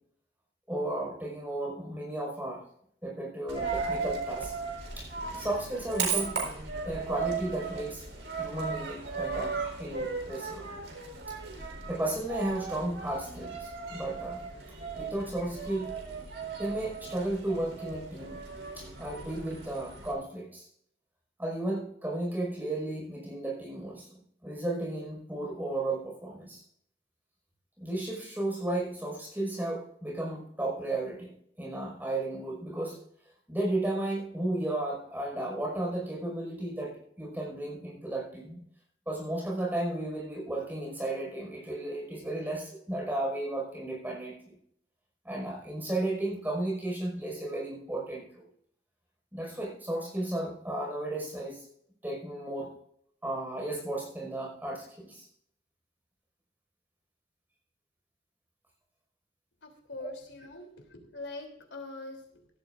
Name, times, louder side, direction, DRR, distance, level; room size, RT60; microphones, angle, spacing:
voice 1, 0.7-2.6 3.0-4.6 5.0-6.3 6.8-8.0 8.4-10.7 11.9-14.4 15.0-15.9 16.6-18.4 18.7-20.7 21.4-26.6 27.8-31.3 31.6-33.0 33.5-38.6 39.1-44.6 45.2-48.5 49.3-51.7 52.0-52.7 53.2-55.3, right 1 dB, 10° right, -1 dB, 5.4 m, -34 dB
Coin (dropping), 3.5-20.1, right 5 dB, 75° right, 4.1 m, -36 dB
voice 2, 59.6-62.5, left 2 dB, 90° left, 4 dB, 3.3 m, -43 dB
16.5 x 13.0 x 2.6 m, 0.66 s
head